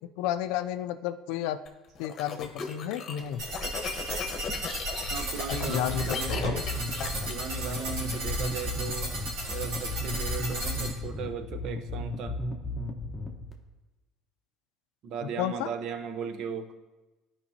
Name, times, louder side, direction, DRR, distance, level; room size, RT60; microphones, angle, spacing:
voice 1, 0.0-1.6 2.0-3.4 5.7-6.6 15.4-15.7, left 11 dB, 85° left, 10 dB, 0.4 m, -32 dB
sound 1, 1.7-8.2, left 5 dB, 45° left, 1.0 m, -37 dB
sound 2, 3.4-10.9, right 1 dB, 80° right, 2.7 m, -34 dB
voice 2, 5.1-6.3 7.3-9.1 9.5-12.4 15.0-16.8, right 6 dB, 60° right, 8 dB, 0.7 m, -37 dB
sound 3, 5.5-13.5, left 2 dB, 10° left, 1.0 m, -34 dB
13.5 x 5.2 x 2.8 m, 1.1 s
cardioid pair, 130°, 0 cm